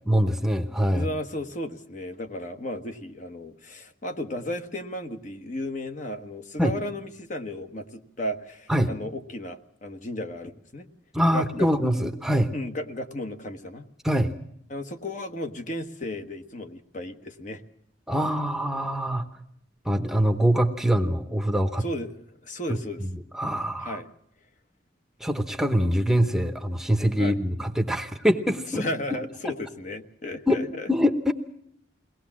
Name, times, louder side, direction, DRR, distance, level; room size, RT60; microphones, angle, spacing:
voice 1, 0.1-1.1 6.6-6.7 8.7-8.9 11.1-12.5 14.0-14.3 18.1-19.3 19.8-21.8 23.3-24.0 25.2-28.8 29.4-29.5 30.5-30.6 30.9-31.3, equal, ahead, 7 dB, 0.9 m, -24 dB
voice 2, 0.9-10.9 11.3-11.7 12.5-13.9 14.7-17.6 21.8-22.2 22.4-23.0 23.8-24.1 27.2-27.4 28.7-30.9, left 1 dB, 40° left, 6 dB, 1.2 m, -34 dB
22.5 x 18.5 x 7.4 m, 0.71 s
head